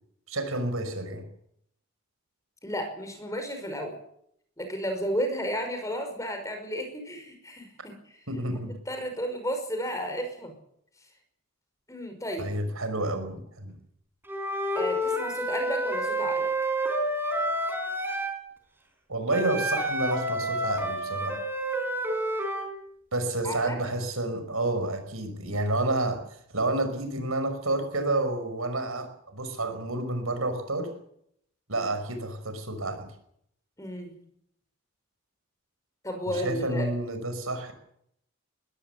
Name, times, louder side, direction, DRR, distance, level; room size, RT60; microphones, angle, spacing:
voice 1, 0.3-1.2 8.3-8.7 12.4-13.8 19.1-21.4 23.1-30.9 31.7-33.1 36.3-37.7, right 2 dB, 75° right, 8 dB, 5.5 m, -29 dB
voice 2, 2.6-4.0 4.6-8.2 8.9-10.6 11.9-12.5 14.8-16.5 23.4-23.8 33.8-34.1 36.0-36.9, equal, 15° left, 5 dB, 5.5 m, -33 dB
Wind instrument woodwind instrument, 14.3-18.4 19.3-22.7, right 1 dB, 10° right, 4.3 m, -29 dB
21.0 x 17.0 x 8.2 m, 0.70 s
head